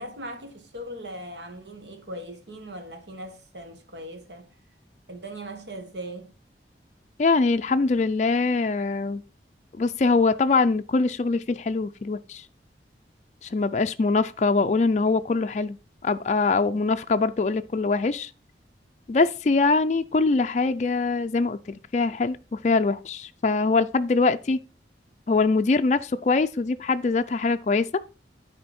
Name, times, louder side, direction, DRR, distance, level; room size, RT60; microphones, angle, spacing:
voice 1, 0.0-4.6 5.1-6.3, right 1 dB, 80° right, 1.5 m, -39 dB
voice 2, 7.2-9.2 9.8-12.4 13.4-15.8 16.0-18.3 19.1-24.6 25.3-28.0, left 3 dB, 40° left, 0.4 m, -23 dB
9.5 x 4.4 x 4.2 m
head